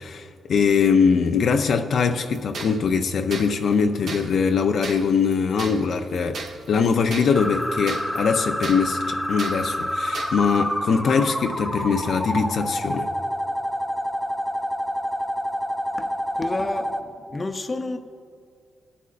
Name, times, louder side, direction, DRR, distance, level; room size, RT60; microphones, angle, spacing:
voice 1, 0.0-6.4 6.7-13.1, left 5 dB, 70° left, 5 dB, 0.5 m, -22 dB
sound 1, 2.3-10.7, right 4 dB, 75° right, 1.0 m, -37 dB
sound 2, 7.3-17.0, equal, ahead, 0.9 m, -28 dB
voice 2, 16.0-18.0, left 2 dB, 30° left, 7 dB, 0.7 m, -31 dB
20.0 x 8.3 x 2.5 m, 2.3 s
cardioid pair, 85°, 0 cm